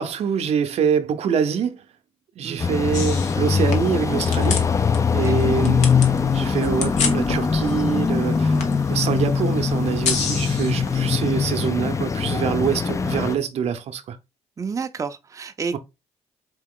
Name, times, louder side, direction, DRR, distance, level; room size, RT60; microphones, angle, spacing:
voice 1, 0.0-1.8 2.4-4.7 5.1-5.9 6.3-8.6 8.9-14.2 15.7-15.8, right 7 dB, 65° right, 0.7 m, -25 dB
sound 1, 2.6-13.4, left 5 dB, 25° left, 0.4 m, -22 dB
sound 2, 2.9-11.0, left 5 dB, 80° left, 1.1 m, -31 dB
voice 2, 14.6-15.8, right 5 dB, 30° right, 0.5 m, -30 dB
4.6 x 2.9 x 3.7 m
cardioid pair, 80°, 12 cm